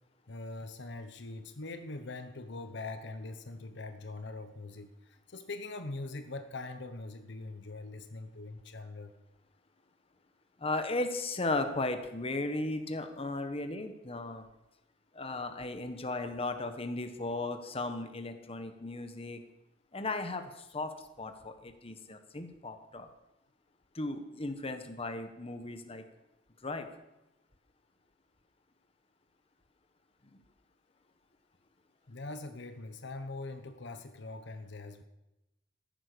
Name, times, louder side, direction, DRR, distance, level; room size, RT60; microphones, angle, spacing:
voice 1, 0.3-9.1 32.1-35.0, left 2 dB, 65° left, 8 dB, 1.0 m, -42 dB
voice 2, 10.6-14.5 15.1-19.4 19.9-23.1 23.9-26.0 26.6-26.9, left 2 dB, 30° left, 7 dB, 1.2 m, -36 dB
14.5 x 10.5 x 6.8 m, 0.94 s
head